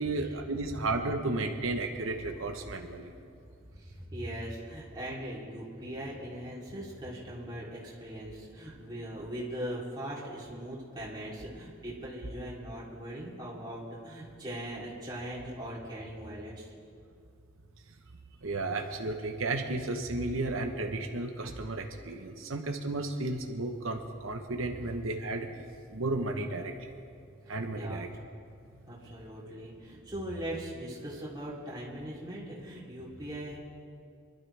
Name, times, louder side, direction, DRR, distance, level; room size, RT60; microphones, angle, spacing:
voice 1, 0.0-3.1 18.4-25.5 25.9-26.7 27.5-28.1, right 2 dB, 85° right, 3 dB, 1.0 m, -33 dB
voice 2, 3.7-16.7 24.8-24.9 27.8-28.0 28.9-33.6, right 1 dB, 20° right, -7 dB, 3.1 m, -40 dB
25.5 x 12.0 x 3.4 m, 2.3 s
head